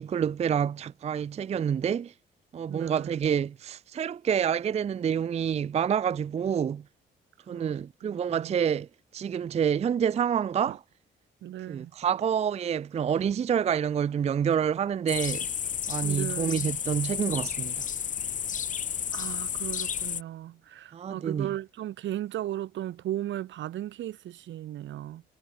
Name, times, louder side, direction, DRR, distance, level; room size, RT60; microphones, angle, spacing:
voice 1, 0.0-2.1 2.5-6.8 7.5-8.9 9.1-10.8 11.7-15.5 15.9-17.8 20.9-21.5, right 8 dB, 35° right, 0.4 m, -28 dB
voice 2, 2.7-3.1 7.5-7.7 8.0-8.6 10.7-10.8 11.4-11.9 16.0-16.7 19.1-25.2, right 13 dB, 70° right, 0.9 m, -36 dB
sound 1, 15.1-20.2, left 8 dB, 40° left, 0.6 m, -32 dB
cardioid pair, 90°, 20 cm